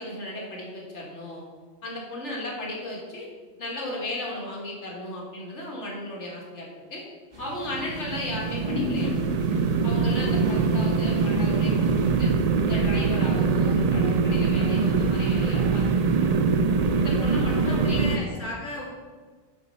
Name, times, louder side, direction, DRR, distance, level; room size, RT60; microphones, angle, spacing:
voice 1, 0.0-1.4 1.8-3.3 3.6-7.0 7.4-9.1 9.8-12.3 12.7-15.8 16.2-16.5 17.0-18.3, left 1 dB, 65° left, -2 dB, 1.8 m, -35 dB
sound 1, 7.3-12.3, left 3 dB, 35° right, 2.6 m, -36 dB
sound 2, 7.6-18.2, right 4 dB, 70° right, 0.3 m, -23 dB
voice 2, 17.5-18.9, left 2 dB, 85° left, -4 dB, 2.8 m, -35 dB
10.0 x 4.1 x 5.4 m, 1.4 s
omnidirectional pair, 1.3 m